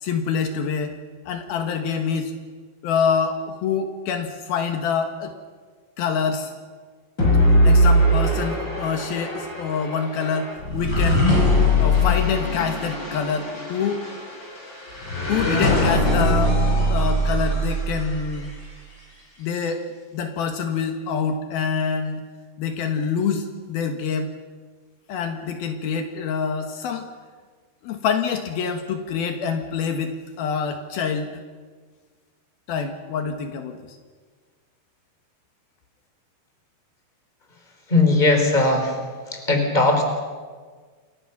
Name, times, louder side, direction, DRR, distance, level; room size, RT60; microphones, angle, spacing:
voice 1, 0.0-1.0 1.3-2.3 2.8-5.3 6.0-6.5 7.6-11.3 11.8-14.1 15.3-16.5 16.9-18.5 19.4-19.8 20.1-22.2 22.6-24.3 25.1-27.1 27.8-31.4 32.7-34.0, left 6 dB, 75° left, 6 dB, 3.3 m, -26 dB
sound 1, 7.2-18.5, equal, 30° left, 6.4 m, -21 dB
voice 2, 37.9-39.0 39.3-40.0, left 2 dB, 10° left, 4 dB, 3.9 m, -18 dB
29.0 x 23.5 x 6.0 m, 1.5 s
omnidirectional pair, 4.5 m